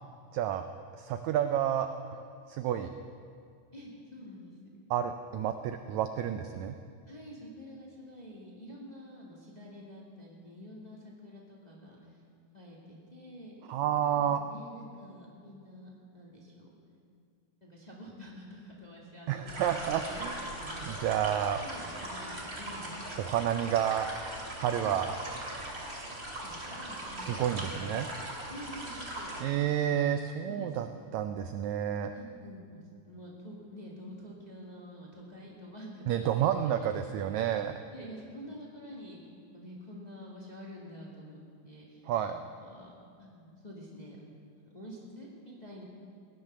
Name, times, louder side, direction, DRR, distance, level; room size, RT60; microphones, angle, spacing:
voice 1, 0.3-0.6 0.9-2.9 4.9-6.8 13.7-14.4 19.3-20.4 20.8-21.6 23.2-24.1 24.5-25.1 27.2-28.0 29.4-30.9 31.1-32.1 36.1-37.8 42.1-42.4, right 10 dB, 85° right, 8 dB, 1.6 m, -30 dB
voice 2, 3.7-4.5 7.1-12.2 12.5-13.5 14.0-16.7 17.6-21.2 21.6-23.0 24.8-25.0 26.4-28.0 28.5-29.8 30.4-31.1 32.1-37.3 37.9-39.2 39.5-42.9 43.2-44.2 44.6-45.8, equal, 15° left, -4 dB, 1.4 m, -48 dB
sound 1, 19.4-29.4, right 1 dB, 20° right, 2.2 m, -40 dB
16.5 x 10.5 x 6.7 m, 2.3 s
omnidirectional pair, 3.9 m